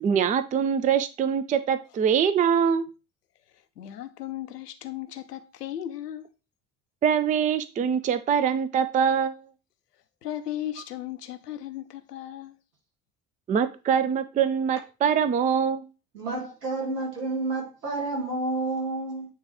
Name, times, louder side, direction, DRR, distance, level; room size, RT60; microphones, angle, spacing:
voice 1, 0.0-2.8 7.0-9.4 13.5-15.9, right 7 dB, 20° right, 0.4 m, -23 dB
voice 2, 3.8-6.3 10.2-12.5, left 12 dB, 80° left, 0.7 m, -36 dB
voice 3, 16.1-19.3, right 2 dB, 80° right, 2.0 m, -30 dB
9.2 x 3.1 x 3.5 m
figure-of-eight pair, 60°, 47 cm